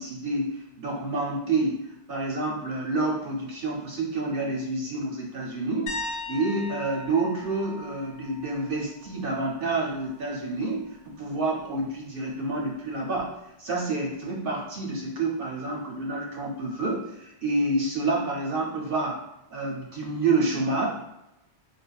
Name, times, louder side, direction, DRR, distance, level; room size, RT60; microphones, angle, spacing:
voice 1, 0.0-13.3 13.6-19.2 19.5-20.9, right 2 dB, 60° right, -2 dB, 0.6 m, -28 dB
sound 1, 5.9-9.6 9.9-10.3 13.2-13.3, left 2 dB, 85° left, 0.9 m, -39 dB
3.3 x 2.1 x 2.2 m, 0.86 s
omnidirectional pair, 1.2 m